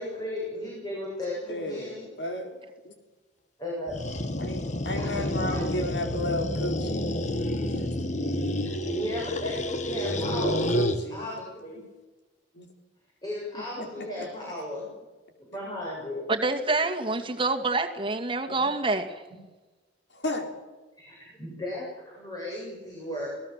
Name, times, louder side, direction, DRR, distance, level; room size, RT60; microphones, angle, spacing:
voice 1, 0.0-2.1 3.6-4.0 5.0-5.2 5.5-5.6 8.6-10.7 11.1-11.8 13.2-14.9 15.5-16.2 16.8-16.9 21.0-23.3, left 1 dB, 20° left, -4 dB, 7.7 m, -35 dB
voice 2, 1.5-2.6 2.8-2.9 4.4-7.1 7.8-8.1 9.9-11.3 12.5-12.7 13.5-14.3 18.5-18.7 20.1-20.5, left 1 dB, 65° left, 4 dB, 4.2 m, -34 dB
sound 1, 3.9-11.0, left 1 dB, 40° left, 1.6 m, -29 dB
voice 3, 16.3-19.1, right 3 dB, 30° right, 3 dB, 2.3 m, -27 dB
26.5 x 18.0 x 7.5 m, 1.2 s
head